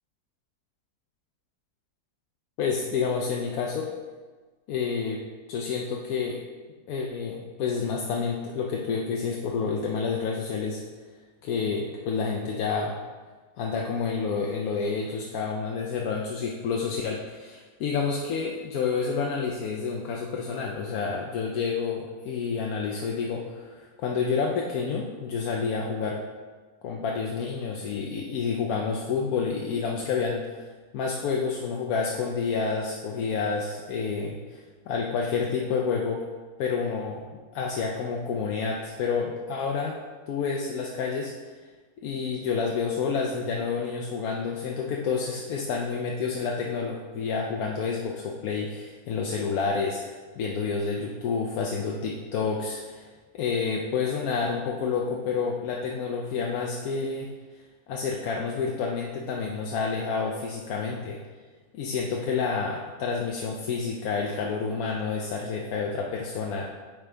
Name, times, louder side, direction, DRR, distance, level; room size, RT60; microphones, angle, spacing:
voice 1, 2.6-3.9 4.7-5.2 5.5-6.4 6.9-10.8 11.4-12.9 13.6-26.2 26.8-30.7 30.9-36.2 36.6-37.3 37.5-40.0 40.3-41.3 42.0-57.3 57.9-61.2 61.7-66.7, left 5 dB, 70° left, -1 dB, 1.1 m, -29 dB
8.8 x 4.7 x 3.3 m, 1.4 s
omnidirectional pair, 1.7 m